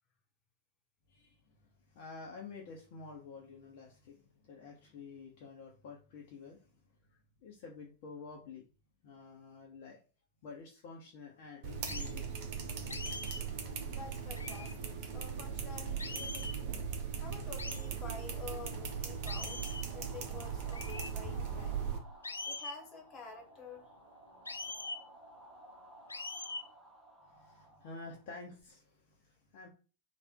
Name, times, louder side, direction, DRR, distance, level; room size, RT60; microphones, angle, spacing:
voice 1, 1.1-6.8 7.4-8.7 9.0-10.0 10.4-12.4 27.2-29.7, left 4 dB, 50° left, -1 dB, 0.9 m, -50 dB
sound 1, 11.6-22.0, right 7 dB, 45° right, 0.9 m, -39 dB
sound 2, 11.9-12.1 12.9-13.5 14.4-14.8 16.0-16.6 17.6-17.9 19.3-19.9 20.7-21.1 22.2-22.8 24.5-25.0 26.1-26.7, left 3 dB, 80° left, 0.4 m, -42 dB
voice 2, 13.9-16.8 17.2-21.8 22.4-23.9, left 4 dB, 25° left, 1 dB, 1.5 m, -50 dB
sound 3, 17.5-28.6, right 1 dB, 20° right, 1.1 m, -57 dB
3.3 x 2.5 x 4.5 m, 0.36 s
figure-of-eight pair, 90°, 0 cm